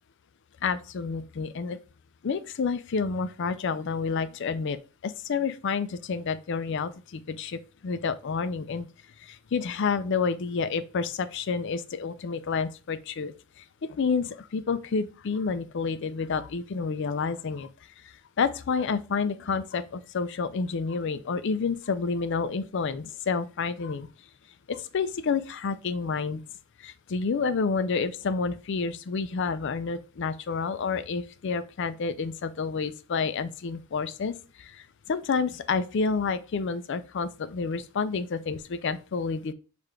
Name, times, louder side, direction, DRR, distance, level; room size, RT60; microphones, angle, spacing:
voice 1, 0.6-1.8 2.2-4.8 5.0-8.9 9.2-13.3 13.8-17.7 18.4-24.1 24.7-26.4 26.8-39.5, left 5 dB, 55° left, 0.4 m, -29 dB
6.6 x 2.5 x 3.1 m
head